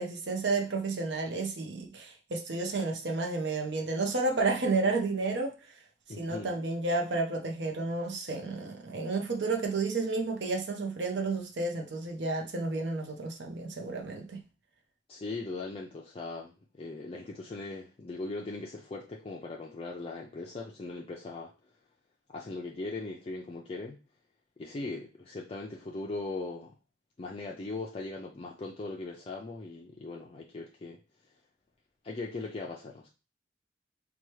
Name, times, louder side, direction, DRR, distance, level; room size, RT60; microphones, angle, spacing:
voice 1, 0.0-5.7 6.2-14.4, right 3 dB, 80° right, 0.6 m, -31 dB
voice 2, 6.1-6.6 15.1-21.5 22.3-24.0 24.6-26.7 27.2-31.0 32.0-33.1, left 3 dB, 35° left, 0.4 m, -39 dB
4.3 x 2.2 x 3.1 m
head